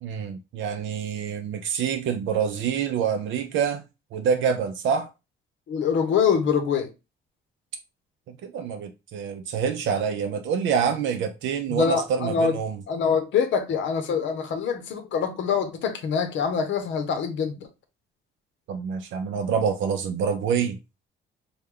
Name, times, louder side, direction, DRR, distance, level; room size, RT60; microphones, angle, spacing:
voice 1, 0.0-3.8 4.1-5.1 8.3-12.8 18.7-20.8, right 7 dB, 75° right, 0.4 m, -26 dB
voice 2, 5.7-6.9 11.7-12.6 12.9-17.7, left 6 dB, 70° left, 0.7 m, -24 dB
3.2 x 2.2 x 3.5 m
cardioid pair, 90°, 20 cm